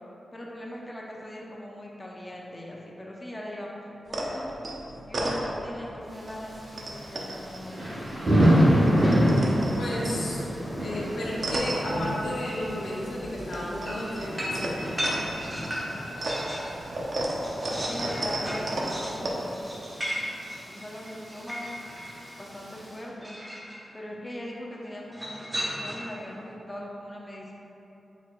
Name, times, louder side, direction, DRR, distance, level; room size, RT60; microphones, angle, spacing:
voice 1, 0.3-4.5 5.1-7.9 17.8-19.5 20.7-21.8 22.4-23.4 23.9-27.5, left 1 dB, 20° left, -3 dB, 0.5 m, -40 dB
sound 1, 4.1-5.9 6.3-8.5 8.7-12.7 13.0-19.3, right 1 dB, 60° right, 0.6 m, -34 dB
Thunder / Rain, 6.1-23.0, equal, 45° right, 1.2 m, -29 dB
voice 2, 9.7-10.4 10.8-15.1, left 1 dB, 80° left, -5 dB, 0.8 m, -33 dB
sound 2, 13.9-16.7 17.1-22.2 23.2-23.8 25.1-26.2, equal, 25° right, 0.8 m, -35 dB
4.3 x 4.1 x 2.4 m, 3.0 s
cardioid pair, 65°, 0 cm